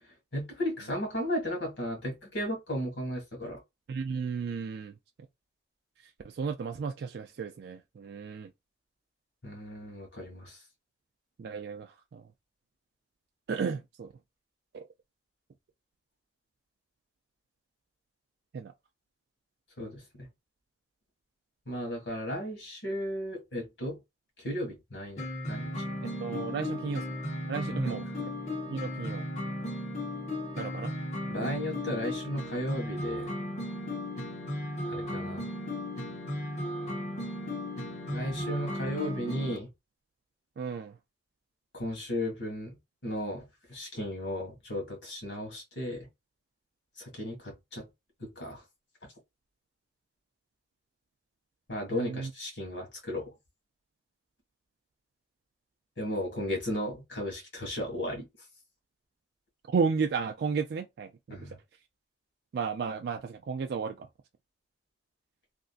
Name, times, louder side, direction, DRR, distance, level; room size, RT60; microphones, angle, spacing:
voice 1, 0.3-3.6 9.4-10.6 19.8-20.3 21.7-24.0 24.4-25.8 27.7-28.0 31.3-33.3 34.9-35.4 38.1-39.7 41.7-42.8 43.0-46.1 47.1-47.9 48.2-48.6 51.7-53.3 56.0-58.3 61.3-61.6, equal, 75° left, 1.8 m, -35 dB
voice 2, 3.9-5.0 6.2-8.5 11.4-12.2 13.5-14.1 14.7-14.8 18.5-18.7 26.2-27.0 27.5-28.3 28.7-29.3 30.6-30.9 40.6-41.0 51.9-52.3 59.7-61.5 62.5-64.1, right 5 dB, 60° right, 0.3 m, -33 dB
sound 1, 25.2-39.6, left 1 dB, 40° left, 0.9 m, -35 dB
3.2 x 2.5 x 2.4 m
head